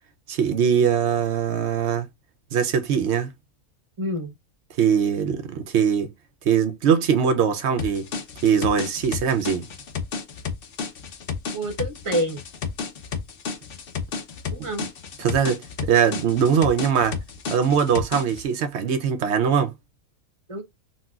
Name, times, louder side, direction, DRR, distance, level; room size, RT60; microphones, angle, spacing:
voice 1, 0.3-2.1 2.5-3.3 4.8-6.1 6.4-8.1 8.4-9.7 14.6-14.7 15.2-15.6 15.9-17.2 17.5-19.7, right 7 dB, 65° right, 0.7 m, -21 dB
voice 2, 4.0-4.3 11.5-12.4 14.5-14.9 20.5-20.6, equal, 25° right, 0.8 m, -27 dB
sound 1, 7.8-18.4, left 6 dB, 55° left, 0.7 m, -32 dB
4.1 x 2.2 x 2.3 m
omnidirectional pair, 1.5 m